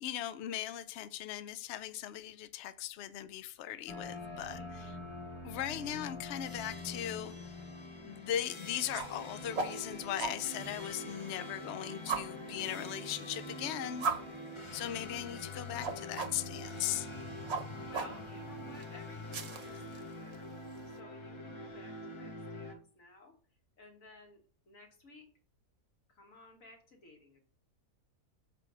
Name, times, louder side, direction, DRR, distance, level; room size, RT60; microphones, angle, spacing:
voice 1, 0.0-5.0 5.4-7.3 8.0-14.1 14.7-17.1, left 11 dB, 70° left, 0.6 m, -38 dB
sound 1, 3.9-22.7, left 1 dB, 25° left, 0.6 m, -44 dB
voice 2, 4.5-5.0 12.3-12.6 17.9-20.5 20.9-23.4 23.8-24.4 24.7-25.3 26.1-27.4, left 2 dB, 55° left, 1.8 m, -56 dB
sound 2, 8.7-21.0, right 5 dB, 45° right, 1.0 m, -42 dB
6.9 x 4.7 x 5.0 m
omnidirectional pair, 1.7 m